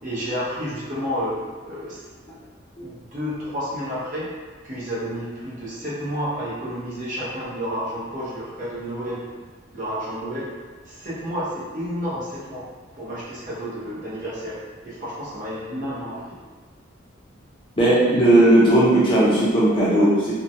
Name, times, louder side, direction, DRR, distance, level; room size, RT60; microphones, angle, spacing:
voice 1, 0.0-1.4 1.6-2.0 2.8-4.3 4.6-9.2 9.7-10.5 10.9-12.6 12.9-14.6 14.8-16.4, equal, 40° right, -8 dB, 0.8 m, -30 dB
voice 2, 17.8-20.3, right 1 dB, 25° left, -8 dB, 0.5 m, -16 dB
3.1 x 2.2 x 2.6 m, 1.5 s
head